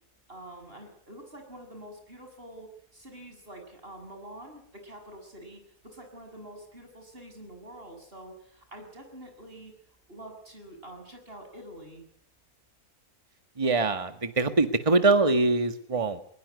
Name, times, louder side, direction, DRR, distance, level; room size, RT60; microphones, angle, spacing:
voice 1, 0.3-9.7 10.1-12.0, right 1 dB, 35° right, 5 dB, 7.4 m, -46 dB
voice 2, 13.6-16.2, right 3 dB, 20° right, 9 dB, 1.7 m, -23 dB
22.0 x 21.5 x 9.6 m, 0.66 s
omnidirectional pair, 1.6 m